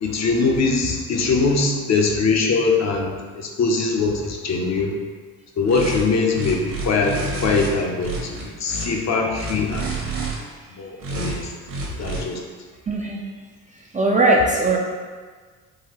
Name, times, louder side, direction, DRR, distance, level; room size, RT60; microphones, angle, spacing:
voice 1, 0.0-3.1 3.6-4.9 5.6-7.1 7.4-8.3 8.6-9.9 10.8-11.4 12.0-12.4, left 4 dB, 40° left, 1 dB, 0.6 m, -21 dB
sound 1, 5.7-6.0 6.3-7.7 8.0-8.9 9.3-10.4 11.0-11.4 11.7-12.2, right 2 dB, 50° right, 1.1 m, -29 dB
voice 2, 12.9-13.2 13.7-14.8, right 2 dB, 20° right, -3 dB, 0.4 m, -19 dB
3.9 x 2.3 x 2.9 m, 1.5 s
hypercardioid pair, 60°, 44 cm